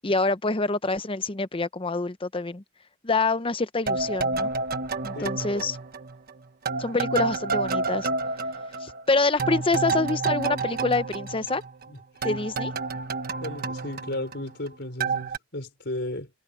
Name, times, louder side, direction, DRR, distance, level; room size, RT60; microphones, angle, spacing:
voice 1, 0.0-2.6 3.0-4.5 5.0-5.8 6.8-8.1 8.8-11.6 12.2-12.7, left 3 dB, 25° left, 0.8 m, -26 dB
sound 1, 3.9-6.3 6.7-11.9 12.2-14.7 15.0-15.4, right 4 dB, 50° right, 1.4 m, -29 dB
voice 2, 5.1-5.7 11.9-12.3 13.4-16.3, left 1 dB, 60° left, 5.4 m, -35 dB
open air
head